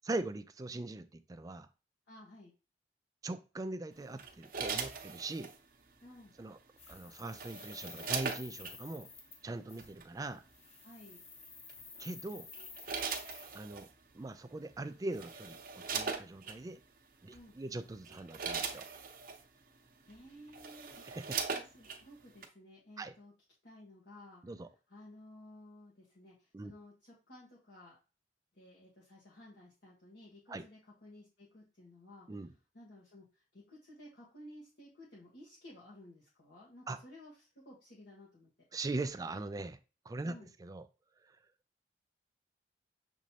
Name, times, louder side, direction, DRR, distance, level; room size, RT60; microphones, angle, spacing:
voice 1, 0.0-1.7 3.2-5.5 6.4-6.6 6.9-9.1 9.4-10.4 12.0-12.5 13.5-13.9 14.1-16.8 17.2-18.8 21.0-21.4 23.0-23.1 24.4-24.7 26.5-26.7 30.5-30.6 32.3-32.5 36.9-37.0 38.7-39.8 40.1-40.9 41.2-41.4, right 2 dB, 20° right, 11 dB, 0.3 m, -41 dB
voice 2, 2.1-2.5 6.0-6.3 10.8-11.2 17.3-17.6 20.0-21.2 21.5-23.3 23.6-24.4 24.9-28.0 28.5-38.7 40.2-40.5, left 1 dB, 70° left, -6 dB, 1.4 m, -55 dB
sound 1, 4.2-5.6 6.9-8.8 9.8-10.0 11.7-12.0 12.5-13.9 14.7-14.8 15.1-16.6 17.3-17.5 17.9-19.4 20.1-20.2 20.5-22.0 22.4-22.5, right 5 dB, 55° right, 0.7 m, -39 dB
sound 2, 6.8-9.4 9.7-9.9 10.5-13.6, left 4 dB, 35° left, 0.8 m, -52 dB
6.3 x 2.9 x 2.8 m, 0.32 s
head